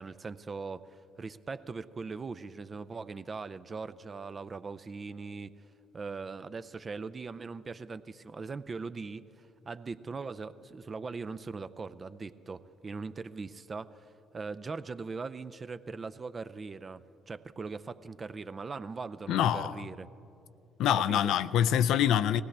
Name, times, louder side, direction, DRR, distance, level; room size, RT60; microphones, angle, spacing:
voice 1, 0.0-5.5 5.9-20.1 21.0-21.3, right 4 dB, 35° right, 0.5 m, -40 dB
voice 2, 19.3-19.7 20.8-22.4, left 10 dB, 70° left, 0.3 m, -25 dB
20.0 x 17.0 x 3.3 m
hypercardioid pair, 55°, 0 cm